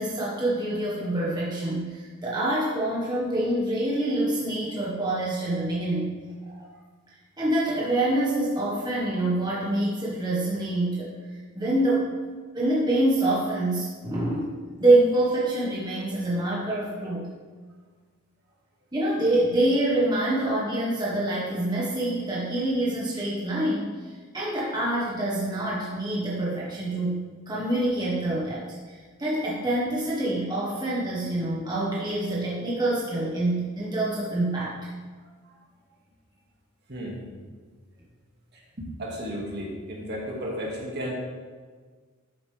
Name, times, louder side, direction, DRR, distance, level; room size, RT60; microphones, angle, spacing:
voice 1, 0.0-6.1 6.4-6.7 7.4-12.1 12.5-14.5 14.8-17.3 18.9-34.8, right 1 dB, 20° right, -6 dB, 1.5 m, -26 dB
voice 2, 35.2-35.6 36.9-37.2 38.5-38.6 39.0-41.1, equal, 50° right, -3 dB, 2.2 m, -34 dB
12.5 x 7.0 x 3.5 m, 1.5 s
head